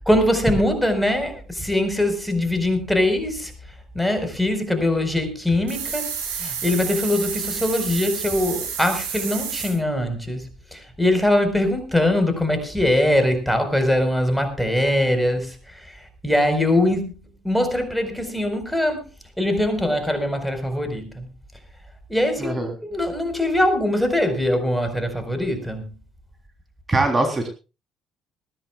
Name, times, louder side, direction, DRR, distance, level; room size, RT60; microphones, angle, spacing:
voice 1, 0.0-3.5 3.9-6.1 6.4-19.0 19.4-21.3 22.1-25.9, left 1 dB, 5° left, 7 dB, 4.5 m, -22 dB
sound 1, 5.7-9.7, right 7 dB, 80° right, 6.7 m, -30 dB
voice 2, 22.4-22.7 26.9-27.5, right 2 dB, 25° right, 3 dB, 3.4 m, -21 dB
21.0 x 16.0 x 2.4 m, 0.31 s
figure-of-eight pair, 50°, 0 cm